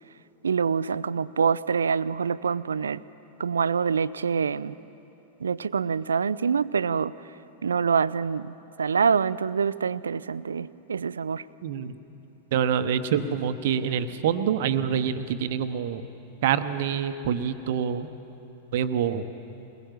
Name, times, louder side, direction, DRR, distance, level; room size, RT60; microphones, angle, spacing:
voice 1, 0.4-3.0 3.4-4.8 5.4-7.1 7.6-11.4, right 6 dB, 70° right, 18 dB, 0.4 m, -25 dB
voice 2, 11.6-11.9 12.5-16.1 16.4-18.1 18.7-19.3, right 8 dB, 55° right, 10 dB, 0.9 m, -26 dB
21.5 x 20.5 x 7.5 m, 2.9 s
figure-of-eight pair, 90°, 0 cm